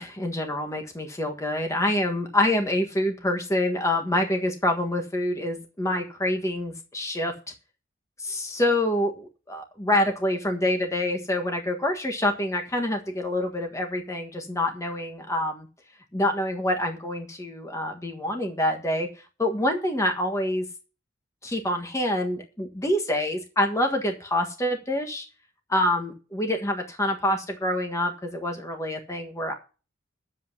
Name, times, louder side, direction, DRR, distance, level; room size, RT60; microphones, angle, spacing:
voice 1, 0.0-7.3 8.2-15.7 16.1-19.1 19.4-20.6 21.4-25.2 25.7-29.5, left 1 dB, 15° left, 4 dB, 1.5 m, -26 dB
10.5 x 7.7 x 5.9 m, 0.33 s
head